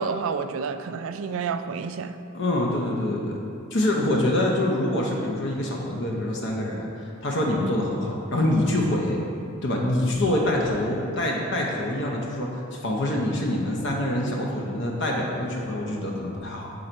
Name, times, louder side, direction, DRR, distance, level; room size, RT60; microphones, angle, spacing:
voice 1, 0.0-2.2, right 5 dB, 70° right, 9 dB, 0.3 m, -29 dB
voice 2, 2.3-3.4 3.7-9.2 9.6-16.7, left 1 dB, 60° left, -1 dB, 0.7 m, -25 dB
7.5 x 3.9 x 4.4 m, 2.6 s
head